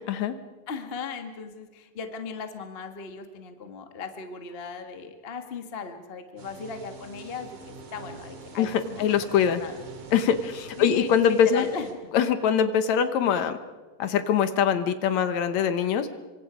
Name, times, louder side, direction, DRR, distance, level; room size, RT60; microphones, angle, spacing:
voice 1, 0.7-9.8 10.8-11.9, left 5 dB, 85° left, 6 dB, 0.5 m, -37 dB
sound 1, 6.4-11.9, right 3 dB, 60° right, 3.7 m, -45 dB
voice 2, 8.6-9.6 10.1-11.7 12.1-13.6 14.0-16.1, left 8 dB, 65° left, 11 dB, 2.0 m, -23 dB
26.5 x 24.0 x 5.0 m, 1.3 s
omnidirectional pair, 4.0 m